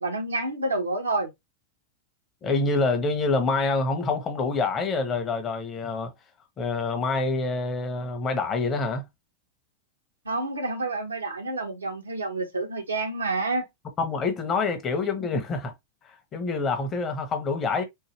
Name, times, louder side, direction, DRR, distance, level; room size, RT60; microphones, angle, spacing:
voice 1, 0.0-1.3 10.2-13.6, right 2 dB, 80° right, 1.1 m, -28 dB
voice 2, 2.4-6.1 6.6-9.1 14.0-15.7 16.3-17.8, left 3 dB, 25° left, 1.2 m, -26 dB
4.6 x 2.7 x 3.0 m
figure-of-eight pair, 90°, 0 cm